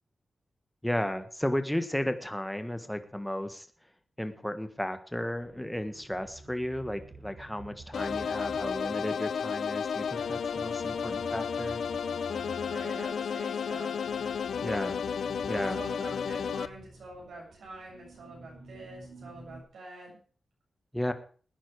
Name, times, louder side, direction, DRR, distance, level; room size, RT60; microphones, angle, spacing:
voice 1, 0.8-3.7 4.2-11.8 14.6-15.0 15.5-15.8 20.9-21.1, left 1 dB, 5° left, 9 dB, 1.5 m, -34 dB
sound 1, 5.4-19.6, right 3 dB, 70° right, 4.6 m, -50 dB
sound 2, 7.9-16.7, left 6 dB, 85° left, 0.7 m, -32 dB
voice 2, 12.7-14.0 15.3-20.2, right 2 dB, 90° right, -3 dB, 7.3 m, -46 dB
19.0 x 10.0 x 4.8 m, 0.43 s
wide cardioid pair, 105°, 0 cm